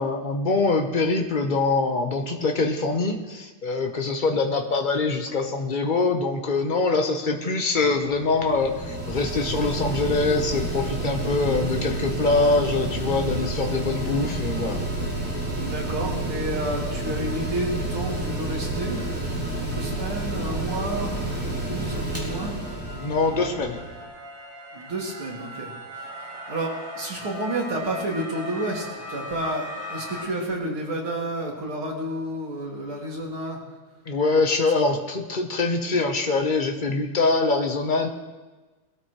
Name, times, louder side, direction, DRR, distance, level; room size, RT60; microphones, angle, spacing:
voice 1, 0.0-14.8 23.0-23.8 34.1-38.1, left 3 dB, 35° left, 3 dB, 0.7 m, -24 dB
Mechanical fan, 7.8-24.0, right 1 dB, 5° right, 2.8 m, -30 dB
voice 2, 15.5-22.6 24.7-33.6, right 1 dB, 70° right, -2 dB, 3.3 m, -31 dB
sound 1, 17.0-30.2, left 1 dB, 40° right, 6.3 m, -41 dB
21.5 x 13.5 x 3.2 m, 1.2 s
omnidirectional pair, 2.4 m